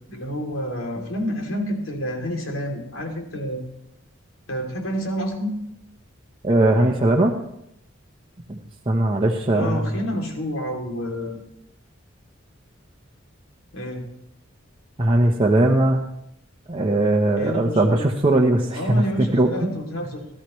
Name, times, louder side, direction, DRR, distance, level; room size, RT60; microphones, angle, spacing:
voice 1, 0.1-3.6 4.5-5.6 9.5-11.4 13.7-14.1 17.4-18.1 18.7-20.3, equal, 85° left, 1 dB, 3.0 m, -29 dB
voice 2, 6.4-7.3 8.5-8.6 8.9-9.8 15.0-16.0 16.7-19.0 19.3-19.5, right 1 dB, 25° right, -1 dB, 0.9 m, -19 dB
18.0 x 13.5 x 3.2 m, 0.75 s
head